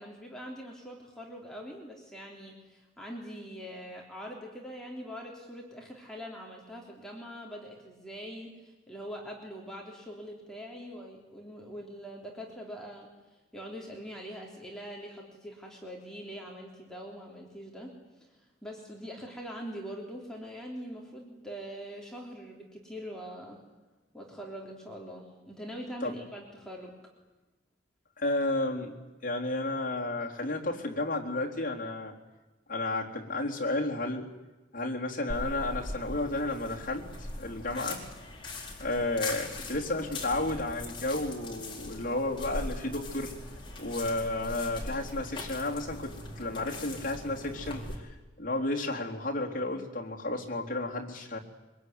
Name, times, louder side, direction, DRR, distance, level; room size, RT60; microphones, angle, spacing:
voice 1, 0.0-13.1 13.5-17.9 18.2-23.6 24.1-26.9, equal, 5° left, -2 dB, 3.6 m, -43 dB
voice 2, 28.2-28.9 29.2-32.1 32.7-34.3 34.7-38.0 38.8-43.3 43.8-48.1 48.4-51.4, left 2 dB, 45° left, -1 dB, 3.8 m, -32 dB
sound 1, 35.3-48.0, left 2 dB, 25° left, 4.5 m, -40 dB
24.0 x 22.0 x 9.8 m, 1.1 s
head